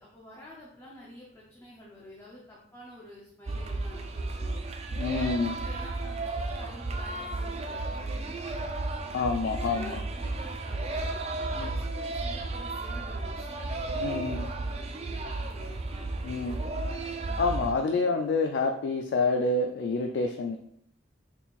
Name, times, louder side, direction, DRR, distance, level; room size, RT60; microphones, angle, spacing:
voice 1, 0.0-4.6 5.1-8.7 9.4-17.0 17.9-18.0, left 1 dB, 15° left, -6 dB, 0.6 m, -48 dB
sound 1, 3.5-17.7, right 2 dB, 35° right, 0.3 m, -33 dB
voice 2, 5.0-5.5 9.1-10.0 11.6-11.7 14.0-14.5 16.2-16.6 17.4-20.6, left 3 dB, 65° left, 4 dB, 0.3 m, -28 dB
4.2 x 3.7 x 2.4 m, 0.70 s
head